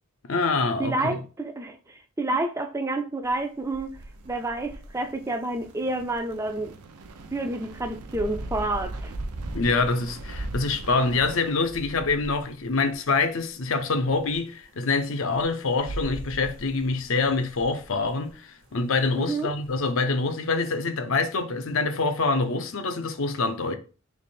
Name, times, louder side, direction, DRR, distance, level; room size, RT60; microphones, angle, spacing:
voice 1, 0.3-1.2 9.5-23.8, left 3 dB, 65° left, 0.6 m, -25 dB
voice 2, 0.8-6.8 7.3-9.1 19.2-19.5, right 2 dB, 15° right, 0.3 m, -29 dB
sound 1, 3.2-13.5 14.0-14.6 14.9-18.3 19.1-19.2 19.6-19.9, right 1 dB, 55° right, 0.8 m, -39 dB
sound 2, 4.0-11.5, right 4 dB, 90° right, 0.6 m, -46 dB
3.3 x 3.0 x 4.2 m
head